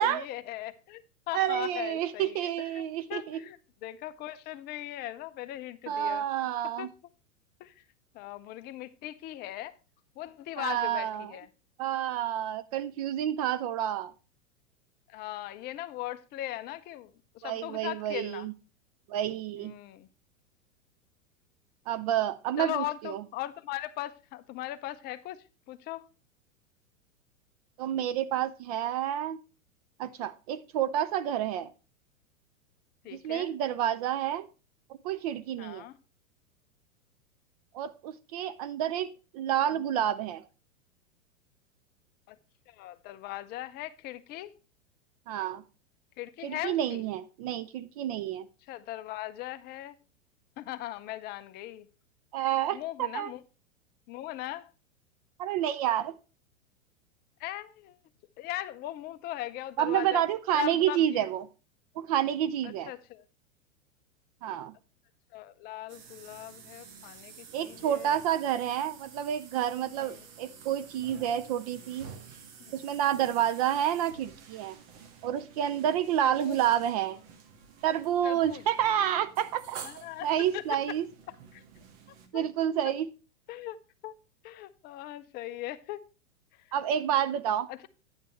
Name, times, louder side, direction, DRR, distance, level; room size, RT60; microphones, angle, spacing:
voice 1, 0.0-6.2 6.8-6.9 7.6-7.8 8.1-9.7 10.2-11.5 15.1-18.5 19.5-20.1 22.6-25.4 25.7-26.1 33.0-33.5 35.6-36.0 42.3-42.4 42.7-44.5 46.2-47.0 48.6-50.0 50.6-51.9 52.7-53.4 54.1-54.7 57.4-58.0 58.4-60.2 60.5-61.3 62.6-63.2 65.3-68.1 70.0-70.2 72.6-72.7 73.2-73.3 76.2-76.6 78.2-78.7 79.8-80.3 80.5-80.8 81.5-81.6 82.3-82.4 82.8-82.9 83.5-83.8 84.0-84.2 84.4-86.0 86.6-86.7 87.7-87.9, left 15 dB, 25° left, 0.6 m, -39 dB
voice 2, 1.3-3.4 5.9-6.9 10.6-11.3 11.8-14.1 17.4-18.5 19.1-19.7 21.9-23.2 27.8-29.4 30.0-31.7 33.1-34.5 35.0-35.8 37.7-40.4 45.3-45.6 46.4-48.5 52.3-53.3 55.4-56.1 59.8-61.4 62.0-62.9 64.4-64.7 67.5-72.1 72.7-74.8 75.2-77.2 77.8-81.0 82.3-83.1 86.7-87.7, right 10 dB, 30° right, 0.4 m, -29 dB
sound 1, 65.9-82.3, right 6 dB, 45° right, 1.8 m, -50 dB
9.5 x 8.9 x 3.0 m
figure-of-eight pair, 100°, 40 cm